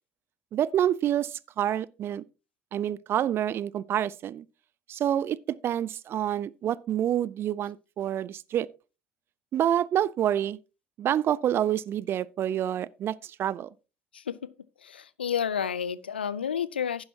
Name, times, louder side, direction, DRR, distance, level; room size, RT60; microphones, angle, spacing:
voice 1, 0.5-2.2 2.7-4.4 4.9-8.7 9.5-10.6 11.0-13.7, right 10 dB, 45° right, 0.5 m, -27 dB
voice 2, 14.1-14.5 14.8-17.0, left 8 dB, 85° left, 0.4 m, -30 dB
10.5 x 10.0 x 2.8 m
figure-of-eight pair, 60°, 5 cm